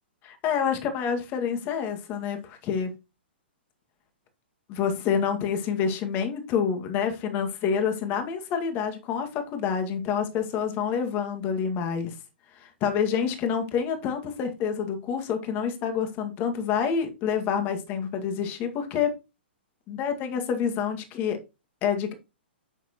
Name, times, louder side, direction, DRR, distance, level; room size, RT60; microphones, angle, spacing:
voice 1, 0.2-2.9 4.7-12.1 12.8-19.1 19.9-21.4 21.8-22.1, left 7 dB, 35° left, 6 dB, 2.1 m, -27 dB
10.0 x 6.8 x 3.1 m, 0.27 s
hypercardioid pair, 120°, 6 cm